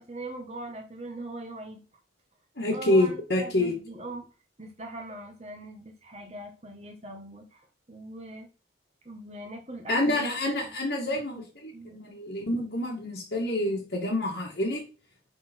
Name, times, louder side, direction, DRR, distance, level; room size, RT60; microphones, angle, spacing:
voice 1, 0.0-1.8 2.7-4.3 4.6-8.5 9.1-10.2 10.6-10.7 11.0-11.4 11.7-12.0, right 2 dB, 35° right, 2 dB, 1.6 m, -41 dB
voice 2, 2.6-3.8 9.9-14.8, left 1 dB, 65° left, -5 dB, 2.2 m, -27 dB
10.5 x 4.3 x 4.6 m, 0.35 s
head